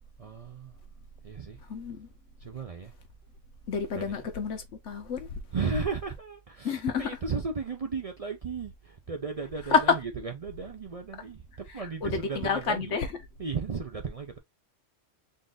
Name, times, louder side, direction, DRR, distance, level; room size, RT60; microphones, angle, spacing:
voice 1, 0.2-0.7 1.2-1.6 2.4-2.9 3.9-4.2 5.5-13.0 13.4-14.4, right 5 dB, 45° right, 0.4 m, -35 dB
voice 2, 1.7-2.1 3.7-5.4 6.6-7.1 9.7-10.0 11.7-13.1, left 5 dB, 75° left, 1.2 m, -28 dB
3.9 x 2.5 x 3.7 m
omnidirectional pair, 1.3 m